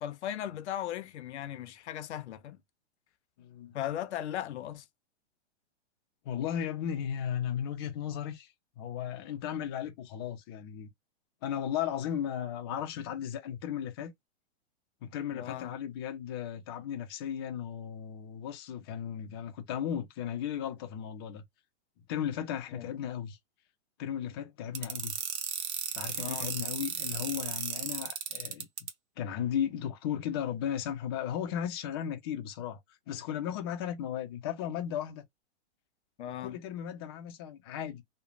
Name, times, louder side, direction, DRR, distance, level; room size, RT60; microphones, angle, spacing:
voice 1, 0.0-2.6 3.7-4.9 15.3-15.8 22.7-22.9 26.2-26.6 36.2-36.6, left 11 dB, 80° left, 0.7 m, -37 dB
voice 2, 3.4-3.7 6.3-8.5 8.8-10.9 11.4-14.1 15.0-21.4 22.1-23.4 24.0-25.2 25.9-28.7 29.2-32.8 33.1-35.2 36.4-38.0, left 9 dB, 25° left, 0.4 m, -35 dB
sound 1, 24.7-28.9, right 8 dB, 80° right, 1.0 m, -34 dB
3.0 x 2.1 x 2.4 m
hypercardioid pair, 155°, 34 cm